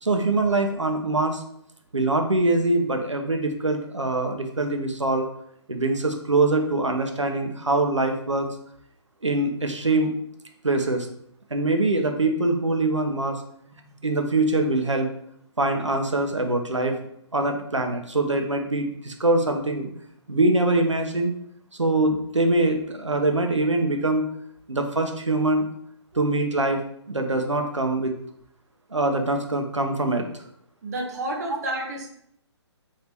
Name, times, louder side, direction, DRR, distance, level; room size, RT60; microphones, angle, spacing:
voice 1, 0.0-1.4 1.9-5.3 5.7-8.5 9.2-10.1 10.6-11.1 11.5-13.4 14.0-15.1 15.6-17.0 17.3-19.9 20.3-21.3 21.8-24.3 24.7-25.7 26.1-26.8 27.1-28.1 28.9-30.3, right 2 dB, 85° right, 4 dB, 0.8 m, -23 dB
voice 2, 30.8-32.1, right 1 dB, 35° right, 0 dB, 0.7 m, -30 dB
3.4 x 2.8 x 4.4 m, 0.71 s
figure-of-eight pair, 135°, 15 cm